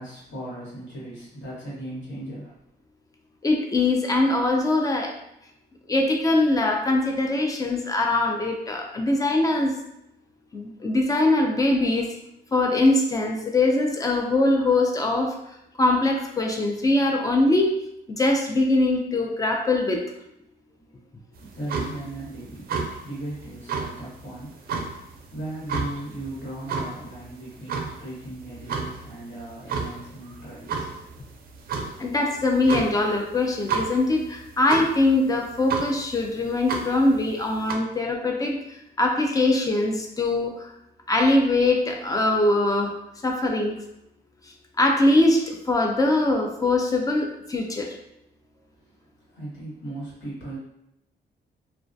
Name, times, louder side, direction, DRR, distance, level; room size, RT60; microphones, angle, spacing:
voice 1, 0.0-2.5 20.8-31.0 48.7-50.6, right 1 dB, 75° left, -7 dB, 1.3 m, -38 dB
voice 2, 3.4-5.1 5.9-9.7 10.5-12.1 12.5-15.4 15.8-17.7 18.1-20.0 32.0-38.6 39.0-40.7 41.1-42.9 43.2-43.8 44.8-47.9, left 2 dB, 20° left, 2 dB, 0.4 m, -22 dB
sound 1, 21.4-37.7, right 5 dB, 55° right, 0.4 m, -33 dB
2.3 x 2.1 x 2.6 m, 0.81 s
cardioid pair, 115°, 19 cm